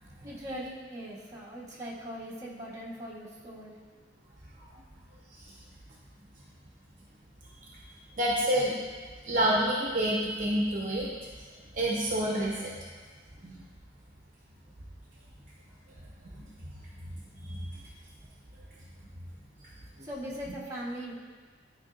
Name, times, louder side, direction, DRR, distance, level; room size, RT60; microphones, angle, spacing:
voice 1, 0.2-3.7 20.0-21.1, equal, 15° right, -6 dB, 1.3 m, -40 dB
voice 2, 8.2-8.8 9.2-11.1 11.7-12.7 13.4-13.5 16.3-16.4 17.5-17.6, right 1 dB, 45° right, -4 dB, 0.9 m, -27 dB
11.5 x 4.8 x 2.6 m, 1.5 s
head